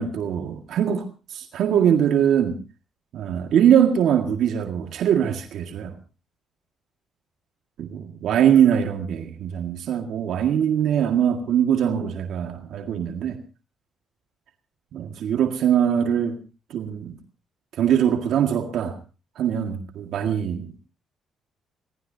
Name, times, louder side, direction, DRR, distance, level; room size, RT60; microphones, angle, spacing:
voice 1, 0.0-2.6 3.1-5.9 7.8-13.3 14.9-16.4 16.7-17.1 17.7-19.0 19.4-20.7, right 9 dB, 75° right, 4 dB, 1.9 m, -22 dB
24.5 x 18.5 x 2.8 m, 0.32 s
cardioid pair, 90°, 0 cm